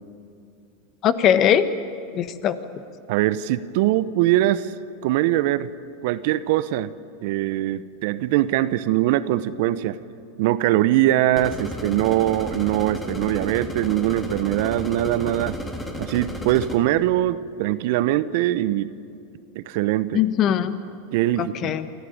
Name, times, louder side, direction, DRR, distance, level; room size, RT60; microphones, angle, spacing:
voice 1, 1.0-1.7 2.1-2.5 20.1-20.7 21.4-21.9, left 10 dB, 40° left, 12 dB, 1.4 m, -20 dB
voice 2, 3.1-4.7 5.0-5.7 6.0-6.9 7.2-10.0 10.4-15.6 16.0-18.9 19.5-20.2 21.1-21.7, right 14 dB, 65° right, 15 dB, 0.9 m, -22 dB
sound 1, 11.4-16.8, left 1 dB, 15° left, 3.3 m, -33 dB
26.5 x 14.5 x 9.6 m, 2.5 s
hypercardioid pair, 100°, 0 cm